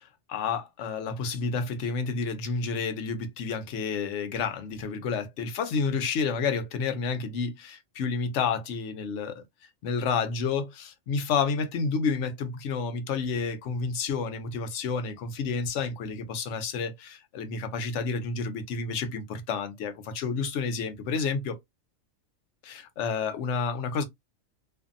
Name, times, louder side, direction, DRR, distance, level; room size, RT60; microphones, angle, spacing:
voice 1, 0.0-21.6 22.6-24.0, left 5 dB, 65° left, 0.9 m, -30 dB
2.6 x 2.6 x 2.4 m
omnidirectional pair, 1.4 m